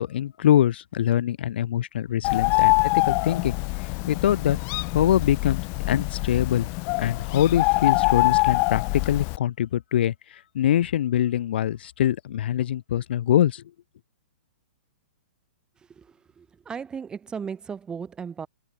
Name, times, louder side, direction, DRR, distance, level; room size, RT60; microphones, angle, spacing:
voice 1, 0.0-3.6 4.1-4.6 4.9-5.6 5.9-6.7 7.0-10.1 10.5-13.6, left 11 dB, 60° left, 0.4 m, -23 dB
Bird, 2.2-9.4, left 36 dB, 35° left, 1.0 m, -24 dB
voice 2, 16.4-18.5, right 6 dB, 15° right, 0.6 m, -35 dB
hypercardioid pair, 125°, 6 cm